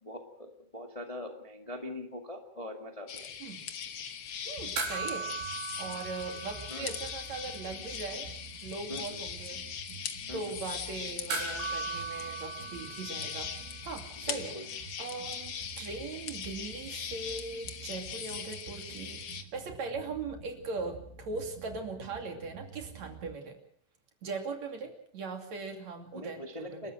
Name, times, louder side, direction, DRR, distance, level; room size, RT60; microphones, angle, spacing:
voice 1, 0.0-3.3 6.7-6.9 8.9-9.2 10.3-10.5 14.3-14.7 26.1-26.9, left 1 dB, 55° left, 4 dB, 0.4 m, -42 dB
Sounds of the forest night, 3.1-19.4, left 8 dB, 85° left, 1.2 m, -41 dB
voice 2, 4.4-5.3 5.8-8.3 8.6-9.6 10.3-13.5 13.8-14.5 15.0-19.2 19.5-23.6 24.2-26.9, right 4 dB, 45° right, 4 dB, 3.5 m, -39 dB
sound 1, 4.6-23.3, right 6 dB, 90° right, 4.1 m, -50 dB
sound 2, 4.8-7.4 7.7-7.8 11.3-13.9 16.0-16.1, right 4 dB, 70° right, 6.2 m, -38 dB
30.0 x 13.0 x 7.6 m, 0.62 s
omnidirectional pair, 5.0 m